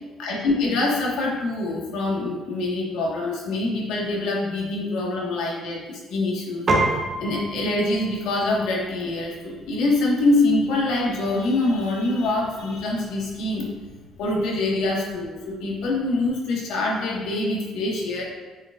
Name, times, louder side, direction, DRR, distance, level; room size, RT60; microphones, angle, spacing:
voice 1, 0.2-6.7 7.2-13.7 14.2-18.2, left 2 dB, 75° left, -3 dB, 1.5 m, -24 dB
Piano, 6.7-16.3, right 2 dB, 25° right, 0.9 m, -33 dB
7.9 x 5.0 x 2.5 m, 1.3 s
cardioid pair, 180°, 0 cm